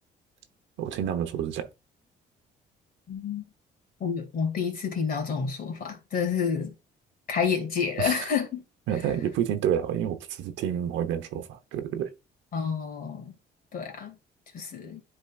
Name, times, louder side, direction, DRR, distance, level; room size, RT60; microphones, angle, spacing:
voice 1, 0.8-1.7 8.0-8.2 8.9-12.1, right 9 dB, 80° right, 1.0 m, -29 dB
voice 2, 3.1-3.5 4.0-6.7 7.3-8.6 12.5-13.3 13.7-14.2 14.5-15.0, left 6 dB, 50° left, 2.4 m, -29 dB
10.5 x 3.9 x 2.4 m
cardioid pair, 100°, 19 cm